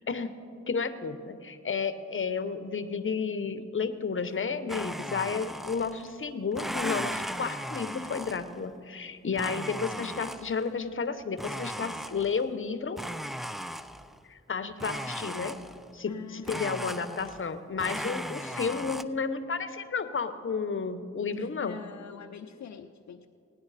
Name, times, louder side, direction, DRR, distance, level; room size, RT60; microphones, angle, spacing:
voice 1, 0.7-13.0 14.2-15.6 15.9-21.8, left 5 dB, 45° left, 10 dB, 0.8 m, -32 dB
Domestic sounds home sounds, 4.7-6.1 6.5-8.6 9.4-10.7 11.4-12.5 13.0-14.2 14.8-15.9 16.5-17.5 17.8-19.0, equal, ahead, 0.3 m, -37 dB
voice 2, 16.1-16.6 21.4-23.3, left 7 dB, 70° left, 5 dB, 0.5 m, -44 dB
17.5 x 9.8 x 4.1 m, 2.4 s
cardioid pair, 50°, 29 cm